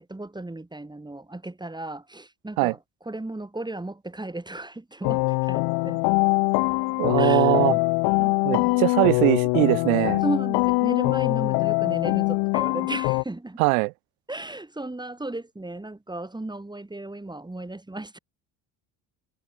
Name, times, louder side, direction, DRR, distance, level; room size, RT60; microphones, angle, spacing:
voice 1, 0.0-2.8 3.0-6.0 7.2-7.6 8.2-8.7 10.2-13.6 14.3-18.2, right 2 dB, 10° right, 6.7 m, -35 dB
sound 1, 5.0-13.2, left 31 dB, 75° left, 0.7 m, -23 dB
voice 2, 7.0-7.8 8.4-10.2 13.6-13.9, right 30 dB, 85° right, 1.0 m, -21 dB
supercardioid pair, 90°, 41 cm